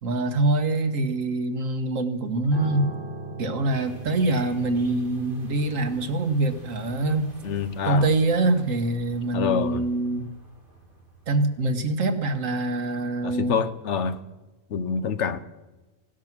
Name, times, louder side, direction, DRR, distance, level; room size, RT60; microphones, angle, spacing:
voice 1, 0.0-2.9 3.4-7.3 7.8-10.3 11.3-13.6, right 2 dB, 90° right, 7 dB, 1.8 m, -24 dB
Piano, 2.5-11.9 12.2-12.4, right 3 dB, 20° right, 5.2 m, -43 dB
sound 1, 3.7-11.9, right 1 dB, 40° right, 3.3 m, -51 dB
voice 2, 7.4-8.1 9.3-9.9 13.2-14.2 14.7-15.4, left 6 dB, 65° left, 12 dB, 1.1 m, -26 dB
17.5 x 12.0 x 6.1 m, 1.1 s
omnidirectional pair, 1.3 m